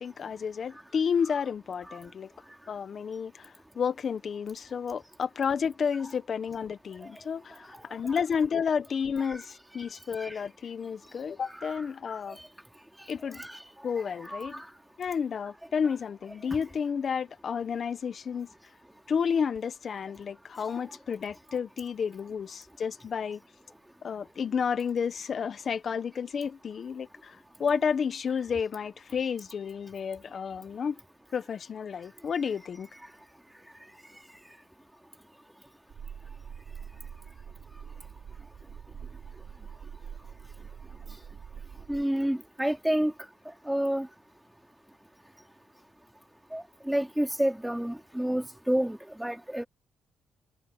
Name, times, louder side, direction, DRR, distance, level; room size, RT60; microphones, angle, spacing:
voice 1, 0.0-2.3 2.7-12.4 13.1-13.4 13.8-14.6 15.0-18.5 19.1-23.4 24.0-30.9 31.3-32.9, left 6 dB, 50° left, 1.1 m, -31 dB
sound 1, 35.9-42.0, right 7 dB, 55° right, 5.2 m, -44 dB
voice 2, 41.9-43.1 43.7-44.1 46.5-49.6, right 1 dB, 5° right, 2.9 m, -29 dB
cardioid pair, 90°, 0 cm